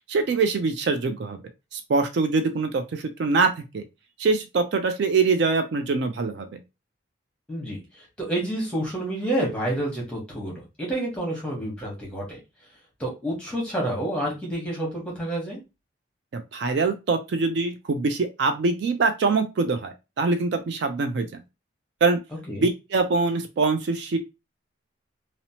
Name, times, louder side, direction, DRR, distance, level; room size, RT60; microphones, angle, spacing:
voice 1, 0.1-1.4 1.7-3.8 4.2-6.5 16.3-21.4 22.0-22.2 22.6-24.2, right 4 dB, 60° right, 7 dB, 0.3 m, -24 dB
voice 2, 7.5-7.8 8.3-12.4 13.0-15.6 22.5-22.6, right 1 dB, 5° left, -3 dB, 0.9 m, -29 dB
2.8 x 2.0 x 2.7 m, 0.26 s
head